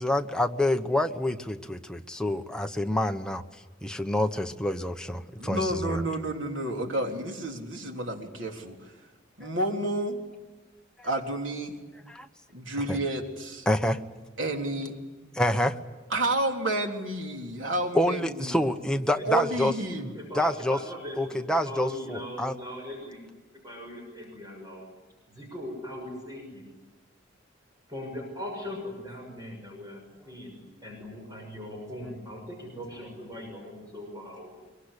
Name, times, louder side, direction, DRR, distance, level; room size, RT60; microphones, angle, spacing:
voice 1, 0.0-3.4 3.8-6.1 9.4-9.5 11.0-11.1 12.1-12.3 12.9-13.0 13.7-14.0 15.3-15.8 17.9-19.7 20.0-20.8 21.2-22.6, left 1 dB, 5° left, 5 dB, 1.0 m, -27 dB
voice 2, 5.4-8.9 9.4-10.2 11.0-11.8 12.5-13.7 14.4-15.0 16.1-18.6 19.3-20.1, right 1 dB, 75° right, 2 dB, 3.6 m, -30 dB
voice 3, 20.1-23.2 23.6-24.9 25.3-26.6 27.9-34.5, left 1 dB, 20° right, 1 dB, 6.4 m, -40 dB
24.0 x 23.0 x 10.0 m, 1.2 s
head